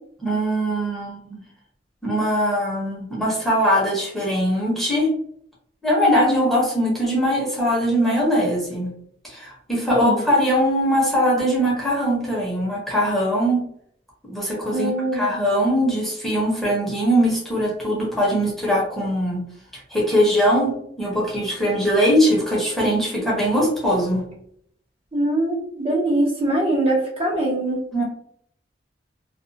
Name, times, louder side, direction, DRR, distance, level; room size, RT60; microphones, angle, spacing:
voice 1, 0.2-1.4 2.0-5.1 5.8-8.9 9.2-13.6 14.3-19.4 19.7-24.2 27.9-28.0, equal, ahead, -6 dB, 0.9 m, -21 dB
voice 2, 14.7-15.2 25.1-27.8, right 1 dB, 30° right, -4 dB, 0.7 m, -22 dB
2.4 x 2.3 x 2.7 m, 0.67 s
head